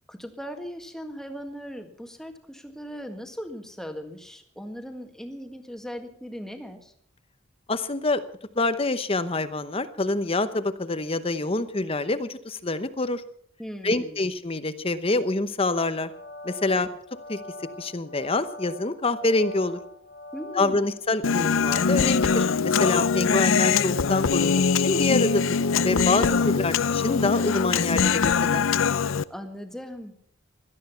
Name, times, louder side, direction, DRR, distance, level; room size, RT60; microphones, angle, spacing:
voice 1, 0.1-6.9 13.6-14.2 16.7-16.9 20.3-20.9 29.3-30.1, equal, ahead, 6 dB, 1.7 m, -38 dB
voice 2, 7.7-8.2 8.6-13.2 13.8-16.1 16.4-16.9 17.3-17.4 17.8-19.8 20.5-28.7, left 2 dB, 30° left, 12 dB, 0.9 m, -26 dB
sound 1, 15.8-21.2, left 2 dB, 55° left, 1.9 m, -42 dB
Human voice, 21.2-29.2, left 5 dB, 75° left, 0.6 m, -22 dB
17.5 x 13.0 x 5.7 m, 0.64 s
head